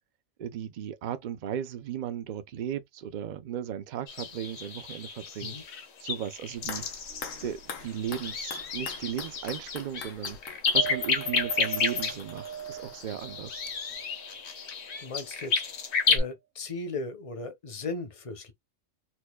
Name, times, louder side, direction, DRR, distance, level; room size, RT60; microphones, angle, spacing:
voice 1, 0.4-5.6 6.0-6.8 7.4-10.4 10.7-13.7, right 9 dB, 55° right, 0.5 m, -36 dB
sound 1, 4.1-16.2, left 5 dB, 60° left, 1.1 m, -31 dB
sound 2, 6.5-13.7 13.9-14.0, left 5 dB, 80° left, 1.4 m, -45 dB
sound 3, 7.1-7.6 9.2-9.3 10.7-15.1 15.8-16.0, right 9 dB, 85° right, 1.0 m, -41 dB
voice 2, 15.0-15.6 16.1-18.5, left 3 dB, 35° left, 0.6 m, -37 dB
4.4 x 2.5 x 2.2 m
omnidirectional pair, 1.4 m